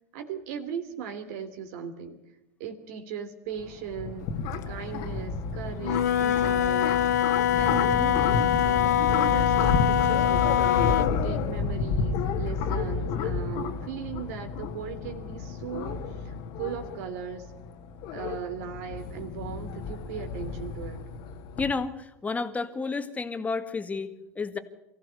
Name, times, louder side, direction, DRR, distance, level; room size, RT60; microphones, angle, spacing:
voice 1, 0.1-2.2 2.6-4.3 4.7-6.9 7.5-10.7 11.0-16.3 16.6-17.5 18.1-21.0, right 7 dB, 65° right, 6 dB, 3.0 m, -38 dB
sound 1, 3.6-21.7, left 5 dB, 55° left, 2.1 m, -31 dB
Wind instrument woodwind instrument, 5.8-11.2, left 10 dB, 80° left, 1.1 m, -24 dB
voice 2, 21.6-24.6, left 4 dB, 15° left, 9 dB, 2.0 m, -31 dB
24.5 x 15.5 x 8.2 m, 0.91 s
hypercardioid pair, 100°, 9 cm